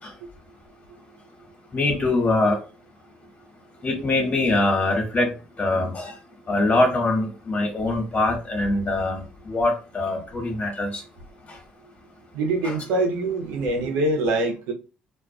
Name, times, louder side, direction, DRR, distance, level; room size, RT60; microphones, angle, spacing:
voice 1, 1.7-2.6 3.8-6.2 6.5-11.0 11.5-11.6 12.6-12.8, left 2 dB, 40° left, 1.4 m, -23 dB
voice 2, 12.3-14.7, right 2 dB, 80° right, 0.7 m, -24 dB
2.4 x 2.3 x 2.3 m
hypercardioid pair, 55°, 4 cm